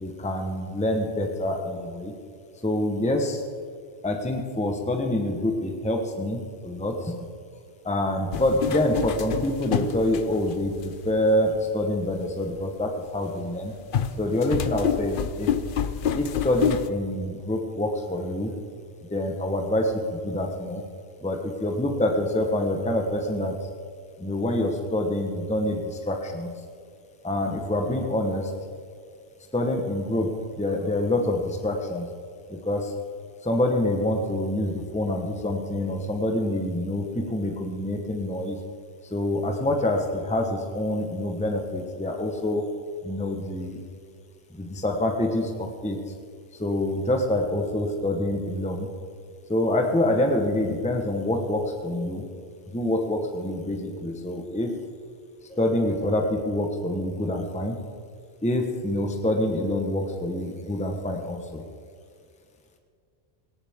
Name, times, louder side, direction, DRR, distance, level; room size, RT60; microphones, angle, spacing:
voice 1, 0.0-2.1 2.6-3.4 4.0-7.3 7.8-13.7 14.2-15.5 16.1-18.5 19.1-20.8 21.2-23.6 24.2-26.5 27.2-28.5 29.5-32.1 32.5-32.9 33.4-38.6 39.1-42.6 43.0-43.8 44.5-46.0 46.6-48.9 49.5-52.2 52.7-54.7 55.5-57.8 58.4-61.6, left 1 dB, 5° left, 3 dB, 1.1 m, -26 dB
sound 1, 8.3-10.8 11.5-11.6 13.9-16.9, left 8 dB, 55° left, 0.7 m, -27 dB
18.0 x 18.0 x 3.6 m, 2.2 s
omnidirectional pair, 1.2 m